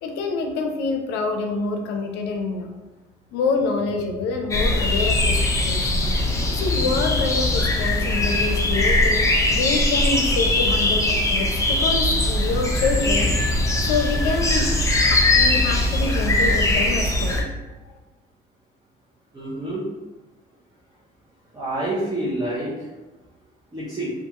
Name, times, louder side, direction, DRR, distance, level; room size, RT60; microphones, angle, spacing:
voice 1, 0.0-2.7 3.3-6.1 6.5-13.3 13.7-14.7 15.0-17.4 17.8-17.9, left 4 dB, 80° left, 3 dB, 0.5 m, -26 dB
sound 1, 4.5-17.4, left 2 dB, 20° left, 0.4 m, -21 dB
voice 2, 19.3-19.8 21.5-22.7 23.7-24.1, right 1 dB, 20° right, -8 dB, 0.6 m, -27 dB
2.4 x 2.3 x 2.8 m, 1.2 s
cardioid pair, 110°, 17 cm